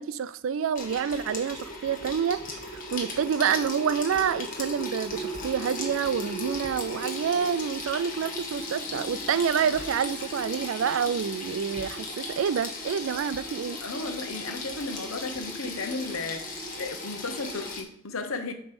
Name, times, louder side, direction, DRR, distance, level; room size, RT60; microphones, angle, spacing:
voice 1, 0.0-2.4 2.9-13.8, right 7 dB, 65° right, 0.3 m, -28 dB
Water tap faucet / Sink (filling or washing), 0.8-17.8, left 1 dB, 40° left, 1.3 m, -36 dB
voice 2, 13.8-18.5, left 3 dB, 75° left, 0.9 m, -34 dB
8.0 x 3.1 x 5.3 m
head